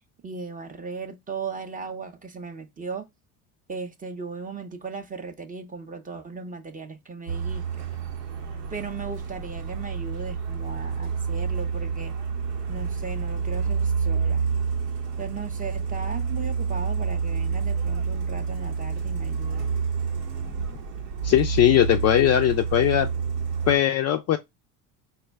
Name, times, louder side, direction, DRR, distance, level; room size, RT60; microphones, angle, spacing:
voice 1, 0.2-3.1 3.7-7.8 8.7-12.2 12.7-14.4 15.2-19.7, right 5 dB, 20° right, 0.6 m, -37 dB
Truck, 7.3-23.8, right 5 dB, 85° right, 0.9 m, -28 dB
voice 2, 21.2-23.1 23.7-24.4, left 12 dB, 35° left, 0.4 m, -20 dB
4.3 x 2.2 x 3.2 m
hypercardioid pair, 70°, 46 cm